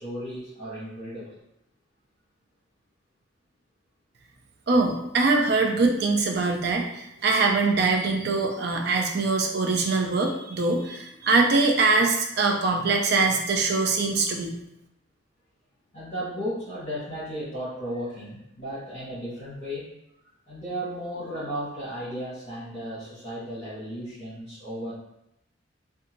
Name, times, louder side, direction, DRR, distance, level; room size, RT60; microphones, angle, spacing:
voice 1, 0.0-1.4 15.9-19.9 20.5-24.9, equal, 35° left, -11 dB, 1.0 m, -34 dB
voice 2, 4.7-14.6, right 3 dB, 55° right, 2 dB, 0.4 m, -23 dB
2.6 x 2.3 x 2.9 m, 0.82 s
head